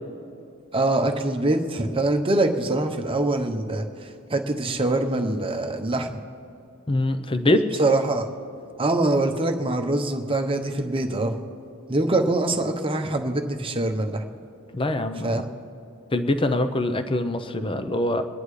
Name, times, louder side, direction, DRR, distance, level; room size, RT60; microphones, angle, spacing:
voice 1, 0.7-6.2 7.8-8.3 8.8-11.3 11.9-14.3 15.2-15.5, right 2 dB, 25° right, 4 dB, 0.9 m, -24 dB
voice 2, 6.9-7.6 14.7-15.4 16.1-18.2, left 1 dB, 25° left, 9 dB, 0.7 m, -23 dB
24.0 x 10.5 x 3.3 m, 2.7 s
head